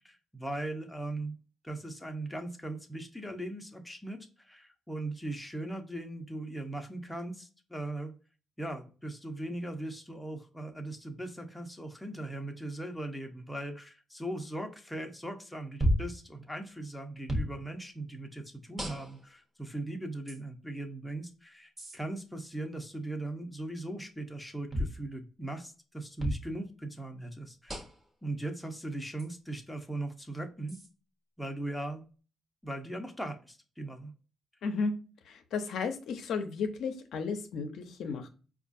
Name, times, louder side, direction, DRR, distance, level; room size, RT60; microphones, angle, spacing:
voice 1, 0.0-1.3 1.6-8.1 8.6-27.7 28.2-30.8 31.4-32.1 32.6-34.1, right 1 dB, 5° left, 4 dB, 0.7 m, -39 dB
sound 1, 15.8-16.2 17.3-17.5 18.8-19.3 20.3-20.4 21.8-22.0 24.7-25.0 26.2-26.4 27.7-28.1 29.2-29.3 30.7-30.9, equal, 20° right, 1.1 m, -32 dB
voice 2, 35.3-38.3, left 5 dB, 75° left, 6 dB, 0.5 m, -33 dB
4.4 x 2.3 x 2.5 m, 0.36 s
cardioid pair, 90°, 0 cm